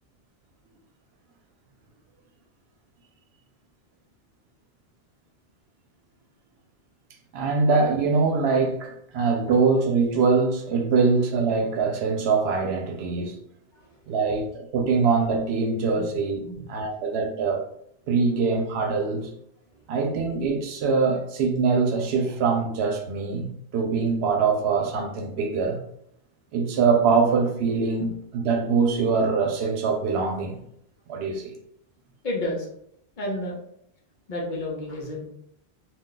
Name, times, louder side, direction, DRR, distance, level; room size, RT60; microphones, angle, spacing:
voice 1, 7.3-13.4 14.1-16.4 16.7-17.7 18.1-19.3 19.9-23.5 23.7-25.8 26.5-30.5 31.1-31.5, right 4 dB, 90° right, 0.8 m, -23 dB
voice 2, 13.7-14.1 15.9-16.1 16.4-16.6 19.7-19.8 32.2-32.7 33.2-33.6 34.3-35.3, left 1 dB, 55° left, 0.8 m, -31 dB
2.3 x 2.2 x 3.7 m
omnidirectional pair, 1.1 m